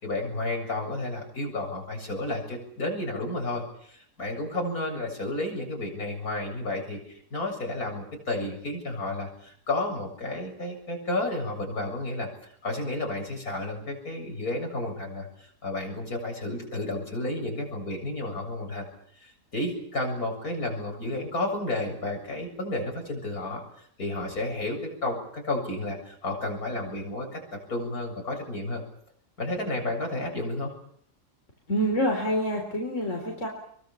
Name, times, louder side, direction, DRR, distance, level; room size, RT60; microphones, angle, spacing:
voice 1, 0.0-12.3 12.6-18.9 19.2-23.6 24.0-28.8 29.4-30.7, left 2 dB, 65° left, 2 dB, 7.9 m, -32 dB
voice 2, 31.7-33.5, equal, 45° left, 1 dB, 4.6 m, -27 dB
27.5 x 23.5 x 7.3 m, 0.67 s
omnidirectional pair, 1.7 m